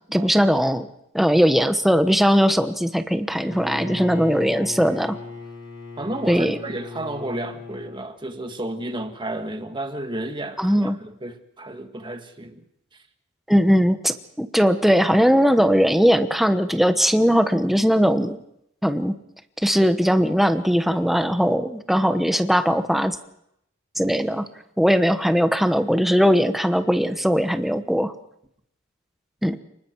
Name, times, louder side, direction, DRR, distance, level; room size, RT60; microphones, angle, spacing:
voice 1, 0.1-0.9 1.1-5.2 6.3-6.6 10.6-11.0 13.5-18.4 18.8-19.2 19.6-23.2 24.0-24.5 24.8-28.1 29.4-29.6, equal, ahead, 1.1 m, -19 dB
Bowed string instrument, 3.3-8.1, left 2 dB, 65° left, 5.7 m, -37 dB
voice 2, 6.0-12.6, right 1 dB, 25° right, 1.8 m, -32 dB
30.0 x 20.0 x 4.7 m
head